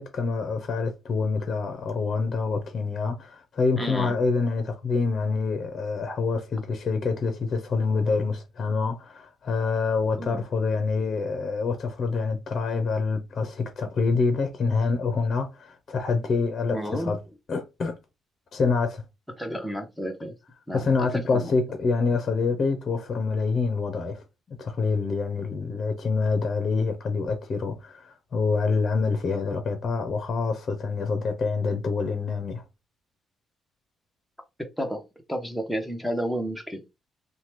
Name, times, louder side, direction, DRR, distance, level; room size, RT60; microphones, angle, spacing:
voice 1, 0.0-17.2 17.5-18.0 18.5-19.0 20.7-24.2 24.5-32.6, left 4 dB, 45° left, 0.7 m, -26 dB
voice 2, 3.8-4.2 10.2-10.4 16.7-17.1 19.4-20.3 20.7-21.5 34.8-35.0 35.3-36.8, equal, ahead, 0.9 m, -31 dB
2.8 x 2.2 x 3.2 m
cardioid pair, 90°, 0 cm